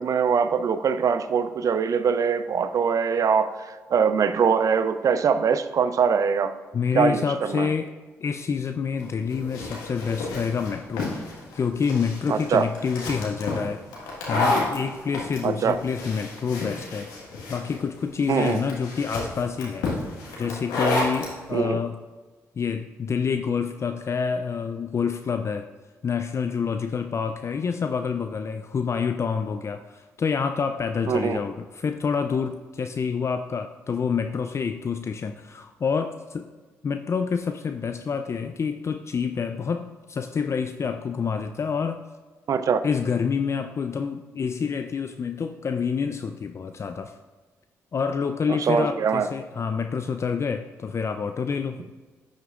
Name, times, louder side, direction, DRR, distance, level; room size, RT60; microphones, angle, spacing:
voice 1, 0.0-6.5 6.9-7.7 12.3-12.7 15.4-15.8 18.3-18.6 21.5-21.8 31.1-31.4 42.5-42.8 48.5-49.3, right 6 dB, 55° right, 11 dB, 0.5 m, -23 dB
voice 2, 6.7-7.9 8.2-13.8 14.3-17.1 17.5-19.9 20.4-22.0 22.6-25.7 26.0-36.5 36.8-42.0 42.8-47.2 47.9-51.8, left 6 dB, 45° left, 7 dB, 0.4 m, -27 dB
sound 1, 9.0-21.3, left 2 dB, 85° left, 1.5 m, -30 dB
11.0 x 6.4 x 2.4 m, 1.4 s
hypercardioid pair, 50°, 7 cm